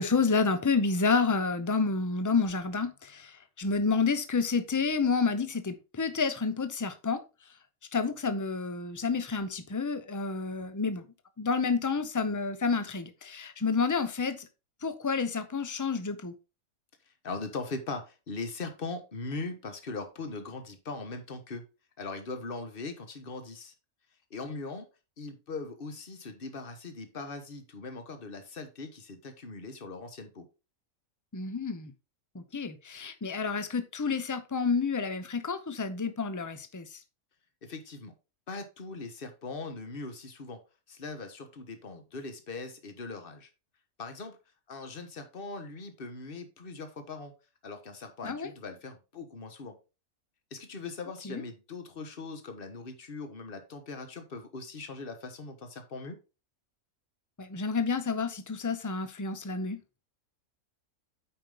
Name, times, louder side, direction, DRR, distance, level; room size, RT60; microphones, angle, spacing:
voice 1, 0.0-7.2 7.9-11.0 11.4-14.5 14.8-16.3 31.3-31.9 32.3-36.9 48.2-48.5 51.2-51.4 57.4-59.8, left 4 dB, 20° left, 0.6 m, -29 dB
voice 2, 17.2-21.6 22.0-23.7 24.3-24.8 25.2-30.5 37.6-38.1 38.5-40.6 40.9-43.5 44.0-44.4 44.7-47.3 47.6-49.7 50.5-56.2, left 3 dB, 40° left, 1.4 m, -40 dB
8.7 x 5.3 x 3.6 m
omnidirectional pair, 1.5 m